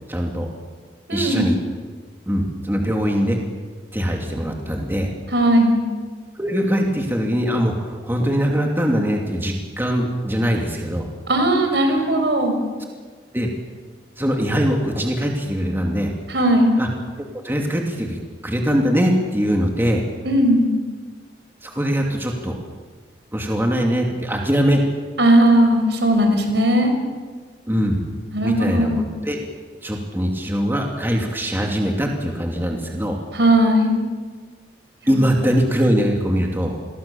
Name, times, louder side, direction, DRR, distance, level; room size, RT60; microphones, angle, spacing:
voice 1, 0.1-0.5 1.1-1.6 2.3-3.4 3.9-5.1 6.4-11.1 13.3-13.5 14.2-16.1 16.8-16.9 17.4-20.0 21.6-22.6 23.3-24.8 27.7-28.0 28.4-29.4 29.8-33.2 35.1-36.8, equal, 10° right, 0 dB, 2.8 m, -22 dB
voice 2, 1.1-1.4 5.3-5.8 11.3-12.6 16.3-16.7 20.2-20.7 25.2-26.9 28.3-29.0 33.3-33.9 35.1-35.3, right 1 dB, 70° right, 5 dB, 5.7 m, -17 dB
29.5 x 22.5 x 7.2 m, 1.5 s
head